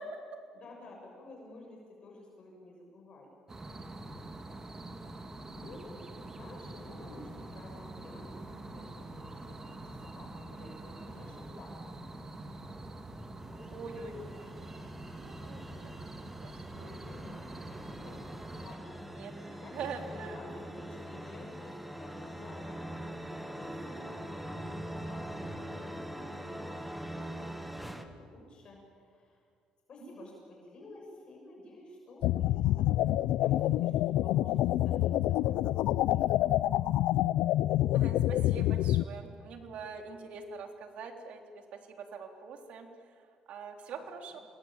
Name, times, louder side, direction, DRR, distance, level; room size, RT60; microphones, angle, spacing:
voice 1, 0.5-3.3 5.0-11.9 13.5-14.4 16.7-18.9 19.2-23.0 23.5-24.6 24.9-29.4 29.9-36.5 44.1-44.2, left 2 dB, 45° left, 0 dB, 6.6 m, -52 dB
sound 1, 3.5-18.8, right 2 dB, 25° right, 2.4 m, -45 dB
sound 2, 13.4-28.0, equal, 5° right, 2.0 m, -43 dB
voice 2, 13.7-14.3 15.1-16.9 18.6-18.7 19.2-20.4 37.9-41.4 41.7-42.9 43.5-44.4, right 5 dB, 70° right, 5 dB, 3.5 m, -44 dB
sound 3, 32.2-39.0, left 14 dB, 85° left, 0.6 m, -27 dB
27.5 x 21.0 x 9.0 m, 2.2 s
cardioid pair, 110°, 2 cm